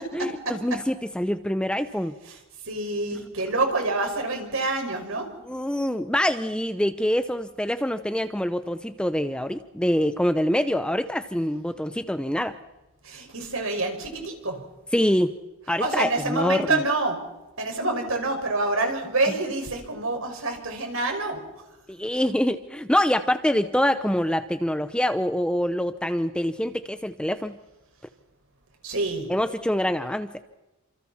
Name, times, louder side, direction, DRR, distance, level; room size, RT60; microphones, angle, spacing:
voice 1, 0.0-2.1 3.1-3.2 5.5-12.6 14.9-15.4 15.7-16.8 21.9-27.6 29.3-30.4, equal, 5° left, 10 dB, 0.7 m, -25 dB
voice 2, 2.7-5.3 13.0-14.6 15.8-17.2 17.6-21.4 28.8-29.3, right 2 dB, 70° right, 3 dB, 5.6 m, -27 dB
29.0 x 27.5 x 4.3 m, 1.0 s
head